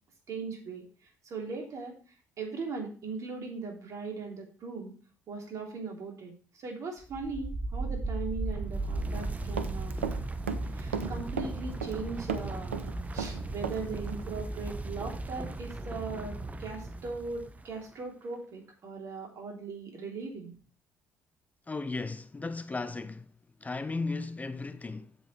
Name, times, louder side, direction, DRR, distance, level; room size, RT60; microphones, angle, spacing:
voice 1, 0.3-0.8 1.2-2.0 2.4-4.9 5.3-10.0 10.7-20.6, right 4 dB, 50° right, 3.3 m, -39 dB
sound 1, 7.0-17.8, right 2 dB, 20° right, 1.0 m, -36 dB
Run, 9.1-10.2 10.5-12.0 12.3-13.8 14.1-14.2, right 6 dB, 85° right, 0.7 m, -35 dB
voice 2, 21.7-25.2, left 3 dB, 20° left, 0.7 m, -36 dB
7.9 x 7.8 x 4.4 m
hypercardioid pair, 50°, 7 cm